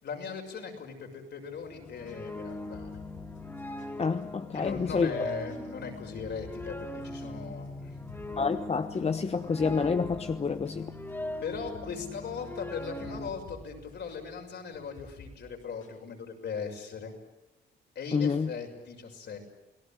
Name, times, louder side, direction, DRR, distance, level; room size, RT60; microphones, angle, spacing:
voice 1, 0.0-3.0 4.5-7.9 11.4-17.1 17.9-19.4, left 5 dB, 60° left, 2 dB, 6.6 m, -39 dB
sound 1, 1.5-13.3, left 2 dB, 10° left, 3.3 m, -40 dB
sound 2, 1.9-3.9 4.2-4.3 4.6-5.0 5.3-7.7 8.1-8.5 8.7-16.0, left 3 dB, 80° left, 6.2 m, -51 dB
voice 2, 4.0-5.1 8.4-10.9 18.1-18.5, left 5 dB, 30° left, 10 dB, 1.1 m, -28 dB
29.0 x 18.5 x 9.1 m, 0.98 s
cardioid pair, 90°, 20 cm